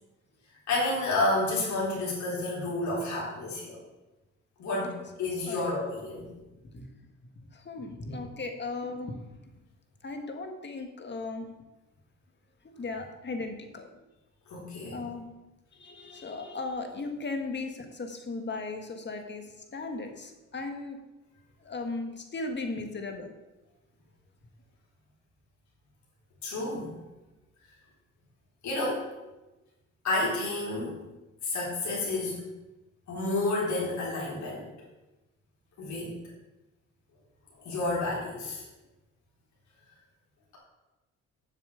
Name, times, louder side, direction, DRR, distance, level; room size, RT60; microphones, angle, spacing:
voice 1, 0.7-3.8 4.6-6.3 14.5-15.0 26.4-26.9 28.6-29.1 30.0-31.0 31.4-32.4 33.1-34.7 35.8-36.1 37.6-38.6, left 2 dB, 70° left, -5 dB, 3.8 m, -30 dB
voice 2, 7.5-9.1 10.0-11.5 12.8-13.9 14.9-15.3 15.7-21.0 21.6-23.3, left 3 dB, 35° left, 5 dB, 1.8 m, -37 dB
7.6 x 7.3 x 7.0 m, 1.0 s
cardioid pair, 90°, 30 cm